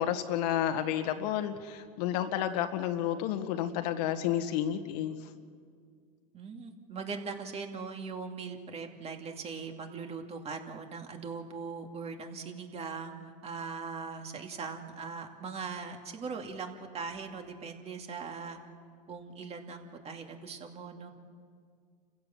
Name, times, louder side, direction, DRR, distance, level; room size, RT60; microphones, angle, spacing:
voice 1, 0.0-5.2, left 10 dB, 70° left, 8 dB, 1.7 m, -31 dB
voice 2, 6.3-18.6 19.1-21.1, right 5 dB, 30° right, 4 dB, 2.5 m, -40 dB
30.0 x 16.0 x 7.2 m, 2.1 s
supercardioid pair, 110°, 21 cm